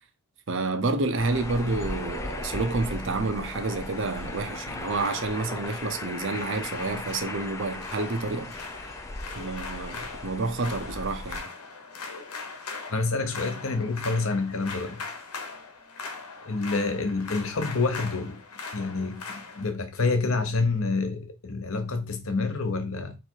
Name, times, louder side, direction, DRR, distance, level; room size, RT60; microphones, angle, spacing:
voice 1, 0.5-8.5 9.3-11.5, right 3 dB, 55° right, 0.6 m, -29 dB
sound 1, 1.2-11.4, left 2 dB, 15° left, 0.4 m, -37 dB
sound 2, 2.8-19.7, left 4 dB, 90° left, 1.1 m, -41 dB
voice 2, 12.9-15.1 16.4-18.4 18.7-23.2, left 3 dB, 70° left, 0.8 m, -28 dB
3.4 x 3.1 x 4.5 m
head